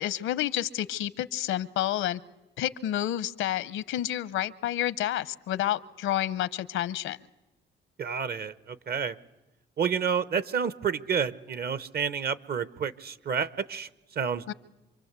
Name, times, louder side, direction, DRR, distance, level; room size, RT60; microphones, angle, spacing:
voice 1, 0.0-2.2 2.6-7.2 14.5-14.6, left 12 dB, 85° left, 17 dB, 0.8 m, -29 dB
voice 2, 8.0-9.2 9.8-14.5, right 6 dB, 50° right, 17 dB, 1.0 m, -30 dB
27.0 x 23.0 x 8.2 m, 0.99 s
cardioid pair, 90°, 20 cm